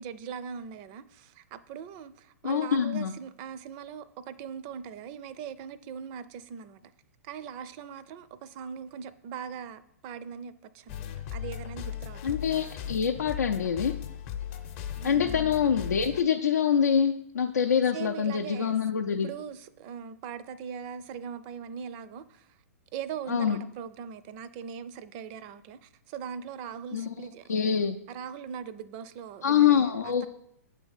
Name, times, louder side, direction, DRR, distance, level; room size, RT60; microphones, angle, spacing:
voice 1, 0.0-6.9 7.2-12.4 14.9-15.5 17.9-18.8 19.2-22.6 22.9-27.6 28.1-30.3, right 7 dB, 40° right, 15 dB, 0.4 m, -40 dB
voice 2, 2.4-3.1 12.2-13.9 15.0-19.3 23.3-23.6 26.9-27.1 27.5-28.0 29.4-30.3, left 8 dB, 85° left, 2 dB, 0.5 m, -25 dB
sound 1, 10.9-16.2, left 10 dB, 45° left, 0.7 m, -37 dB
8.2 x 3.4 x 5.6 m, 0.76 s
hypercardioid pair, 120°, 9 cm